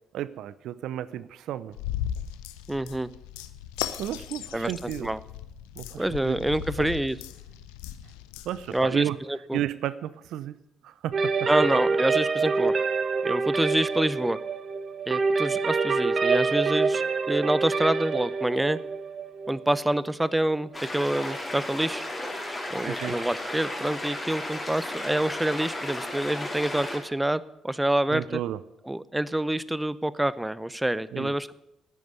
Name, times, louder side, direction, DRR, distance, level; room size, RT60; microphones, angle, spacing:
voice 1, 0.1-1.8 4.0-5.1 5.8-6.4 6.8-6.9 8.4-9.2 9.5-10.6 10.8-11.5 22.9-23.2 28.1-28.6 31.1-31.3, right 12 dB, 70° right, 17 dB, 0.5 m, -33 dB
sound 1, 1.7-8.9, left 11 dB, 80° left, 0.7 m, -37 dB
voice 2, 2.7-3.1 4.5-5.2 6.0-7.2 8.7-9.6 11.5-12.7 13.2-14.4 15.1-18.8 19.5-22.0 22.7-28.4 28.9-31.6, right 1 dB, 10° right, 18 dB, 0.7 m, -27 dB
sound 2, 11.1-20.8, right 4 dB, 45° right, 1.3 m, -26 dB
sound 3, 20.7-27.0, left 1 dB, 15° left, 4.1 m, -34 dB
9.9 x 9.4 x 9.4 m, 0.87 s
hypercardioid pair, 45°, 0 cm